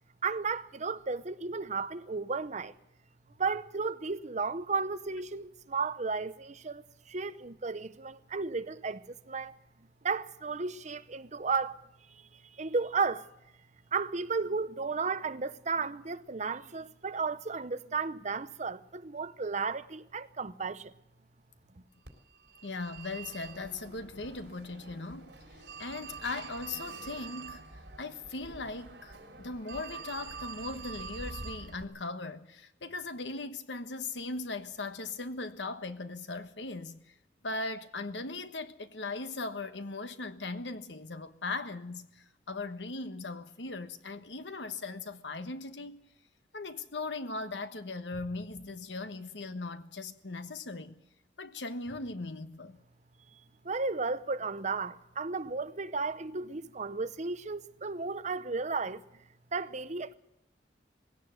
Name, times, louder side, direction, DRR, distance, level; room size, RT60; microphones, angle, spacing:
voice 1, 0.2-2.7 3.4-9.5 10.0-11.8 12.6-13.3 13.9-20.9 53.6-59.0 59.5-60.1, right 4 dB, 40° right, 0.8 m, -34 dB
Telephone, 22.0-31.8, right 4 dB, 75° right, 3.9 m, -45 dB
voice 2, 22.6-27.6 28.0-37.1 37.4-46.0 46.5-51.0 51.4-52.8, left 3 dB, 90° left, 1.3 m, -39 dB
20.0 x 17.0 x 7.9 m
head